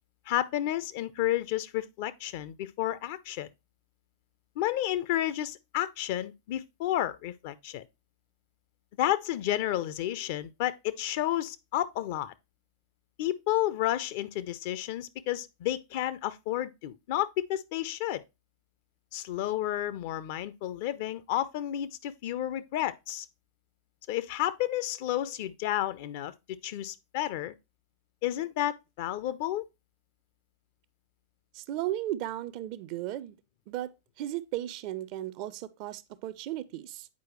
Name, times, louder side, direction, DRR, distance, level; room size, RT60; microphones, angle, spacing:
voice 1, 0.3-3.5 4.6-7.8 9.0-12.3 13.2-18.2 19.1-23.3 24.1-26.3 26.6-27.5 28.2-29.6, left 13 dB, 50° left, 0.4 m, -31 dB
voice 2, 31.5-33.4 33.7-37.1, right 14 dB, 45° right, 0.4 m, -35 dB
8.2 x 4.6 x 3.0 m
figure-of-eight pair, 90°, 0 cm